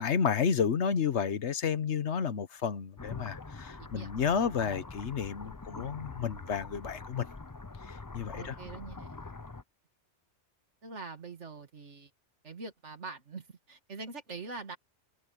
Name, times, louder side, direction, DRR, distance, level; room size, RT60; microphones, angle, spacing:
voice 1, 0.0-7.3 7.9-8.6, left 7 dB, 75° left, 1.3 m, -31 dB
sound 1, 3.0-9.6, left 3 dB, 20° left, 0.7 m, -44 dB
voice 2, 3.8-4.3 8.3-9.2 10.8-12.1 12.4-14.8, right 4 dB, 80° right, 2.4 m, -44 dB
omnidirectional pair, 1.2 m